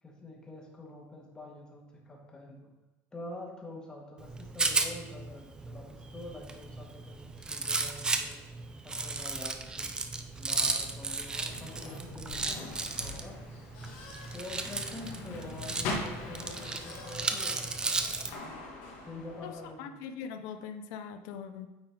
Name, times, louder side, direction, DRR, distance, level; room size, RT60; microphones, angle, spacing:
voice 1, 0.0-2.7 3.1-8.4 8.8-9.9 10.3-13.4 14.3-18.0 19.0-20.0, left 2 dB, 10° left, -1 dB, 1.2 m, -46 dB
Rattle, 4.2-18.3, right 3 dB, 10° right, 0.4 m, -35 dB
sound 1, 10.6-19.7, left 2 dB, 85° left, 1.6 m, -42 dB
voice 2, 19.4-21.7, left 7 dB, 65° left, 9 dB, 0.6 m, -42 dB
8.6 x 3.9 x 4.4 m, 1.0 s
cardioid pair, 165°, 6 cm